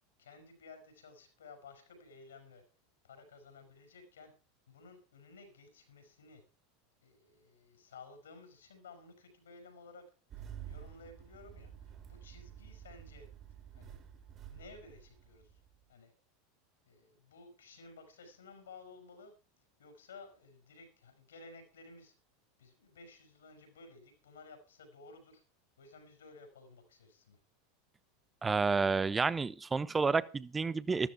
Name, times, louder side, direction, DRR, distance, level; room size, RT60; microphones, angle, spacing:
voice 1, 0.2-2.6 3.0-4.3 4.7-6.4 7.0-10.0 10.4-13.3 13.7-14.0 14.5-15.6 15.9-16.1 16.9-19.3 19.8-22.1 22.6-25.4 25.8-27.4, left 3 dB, 70° left, 5.7 m, -55 dB
Engine starting, 10.3-15.8, right 9 dB, 35° right, 3.7 m, -50 dB
voice 2, 28.4-31.1, right 4 dB, 15° right, 0.9 m, -30 dB
14.0 x 13.5 x 4.6 m
figure-of-eight pair, 85°, 0 cm